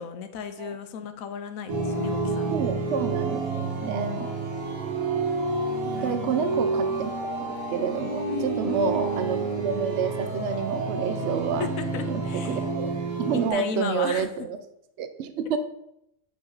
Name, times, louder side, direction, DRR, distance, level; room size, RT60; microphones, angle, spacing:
voice 1, 0.0-2.6 3.8-4.3 5.9-6.5 8.3-8.9 11.6-12.6 13.5-14.3, left 7 dB, 75° left, 9 dB, 1.1 m, -35 dB
sound 1, 1.7-13.5, right 3 dB, 90° right, 1.9 m, -29 dB
voice 2, 2.5-4.3 6.0-11.7 12.1-12.9 13.2-14.6 15.0-15.6, right 6 dB, 65° right, 9 dB, 0.9 m, -29 dB
6.9 x 5.2 x 4.0 m, 0.78 s
omnidirectional pair, 1.4 m